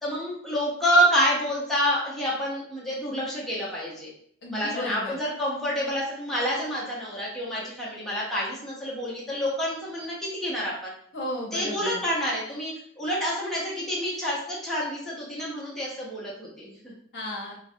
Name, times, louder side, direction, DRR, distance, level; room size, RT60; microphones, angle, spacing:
voice 1, 0.0-4.1 4.5-10.9 11.5-16.9, equal, ahead, -7 dB, 0.6 m, -28 dB
voice 2, 4.4-5.2 11.1-12.0 17.1-17.5, left 1 dB, 75° left, -2 dB, 0.7 m, -34 dB
2.2 x 2.1 x 2.6 m, 0.64 s
head